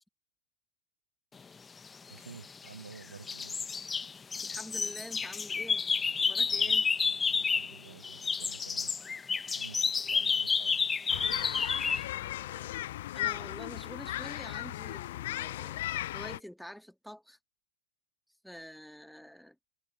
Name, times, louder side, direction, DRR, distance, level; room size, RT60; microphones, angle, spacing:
sound 1, 2.1-2.9 3.3-7.8 8.0-12.0, left 5 dB, 15° left, 1.5 m, -30 dB
voice 1, 2.1-3.6 6.4-6.8 7.3-9.0 9.5-10.9 11.1-11.5, right 5 dB, 75° right, 7.1 m, -51 dB
voice 2, 4.4-5.8 6.1-6.8 12.1-15.8 16.1-17.4 18.4-19.6, equal, ahead, 2.4 m, -47 dB
sound 2, 11.1-16.4, left 15 dB, 55° left, 0.6 m, -36 dB
figure-of-eight pair, 90°, 0 cm